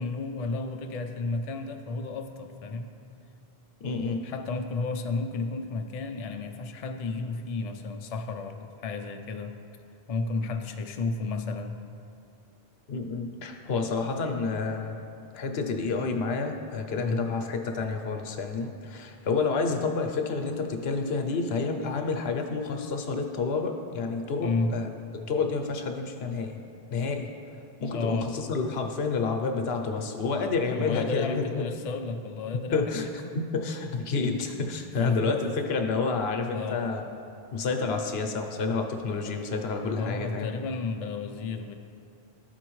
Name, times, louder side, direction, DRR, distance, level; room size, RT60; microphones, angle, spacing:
voice 1, 0.0-3.0 4.2-9.6 10.1-11.8 17.0-17.2 24.4-24.7 27.9-28.3 30.7-33.3 35.0-35.3 36.5-36.8 40.0-41.7, left 3 dB, 55° left, 5 dB, 0.4 m, -32 dB
voice 2, 3.8-4.3 12.9-15.0 15.3-24.9 25.1-26.6 26.9-27.3 27.8-31.6 32.7-33.1 33.3-37.0 37.5-40.5, left 4 dB, 75° left, 4 dB, 0.9 m, -29 dB
12.5 x 4.4 x 3.1 m, 2.6 s
omnidirectional pair, 1.1 m